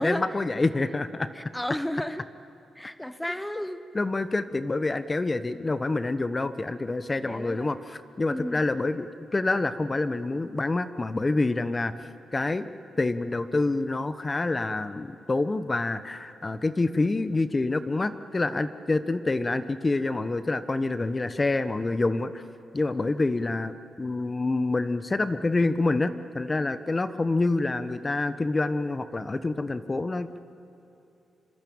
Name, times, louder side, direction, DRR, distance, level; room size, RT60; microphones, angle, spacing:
voice 1, 0.0-1.3 3.9-12.7 13.0-22.4 22.7-30.4, left 2 dB, 30° left, 12 dB, 1.2 m, -27 dB
voice 2, 1.3-2.2 2.8-3.8 7.2-7.7 8.3-8.6, left 1 dB, 5° left, 12 dB, 1.1 m, -32 dB
25.5 x 24.5 x 8.9 m, 2.9 s
supercardioid pair, 60°, 0 cm